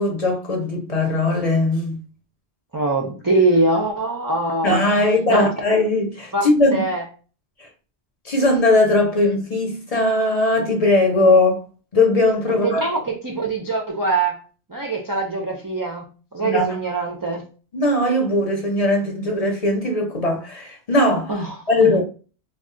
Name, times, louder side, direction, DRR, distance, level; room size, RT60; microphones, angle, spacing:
voice 1, 0.0-2.0 4.6-6.8 7.6-7.7 8.2-11.6 11.9-12.8 16.4-16.7 17.7-21.3 21.7-22.0, left 2 dB, 40° left, 0.8 m, -19 dB
voice 2, 2.7-5.5 6.3-6.4 6.7-7.0 12.5-14.4 14.7-16.1 16.3-17.5 21.3-22.0, right 2 dB, 35° right, 0.3 m, -23 dB
2.3 x 2.3 x 3.7 m
omnidirectional pair, 1.1 m